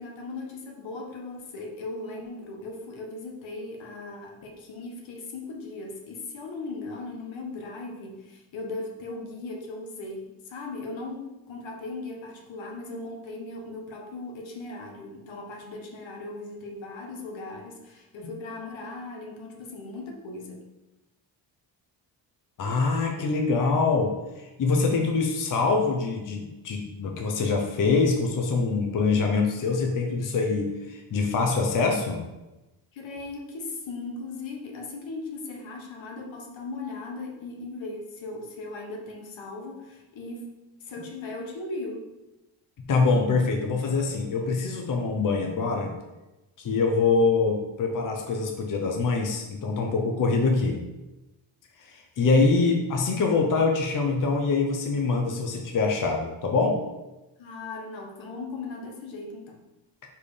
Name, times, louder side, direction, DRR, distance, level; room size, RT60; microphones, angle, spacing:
voice 1, 0.0-20.6 32.9-40.5 40.8-42.0 52.2-52.7 57.4-59.6, left 3 dB, 85° left, 1 dB, 1.5 m, -38 dB
voice 2, 22.6-24.1 24.6-32.2 42.9-45.9 46.6-50.8 51.8-56.8, left 4 dB, 45° left, 2 dB, 0.9 m, -24 dB
5.2 x 4.6 x 5.0 m, 1.0 s
cardioid pair, 135°, 45 cm